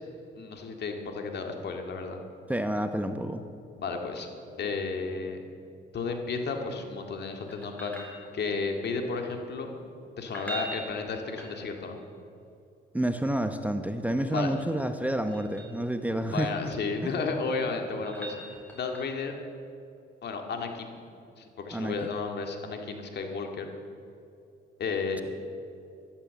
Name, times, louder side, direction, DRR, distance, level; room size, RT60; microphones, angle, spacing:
voice 1, 0.4-2.2 3.8-4.3 4.6-5.4 5.9-8.0 8.3-9.7 10.2-12.0 14.3-14.5 16.1-18.4 18.7-19.4 20.2-21.0 21.4-23.7 24.8-25.2, left 4 dB, 60° left, 4 dB, 2.1 m, -33 dB
voice 2, 2.5-3.4 12.9-16.7 17.0-17.1 21.7-21.9, right 1 dB, 5° right, 8 dB, 0.8 m, -29 dB
sound 1, 7.5-8.7 10.2-12.0 14.2-15.8 17.2-19.3 22.1-22.2, right 2 dB, 10° left, 4.3 m, -43 dB
14.0 x 11.5 x 7.7 m, 2.6 s
cardioid pair, 90°, 20 cm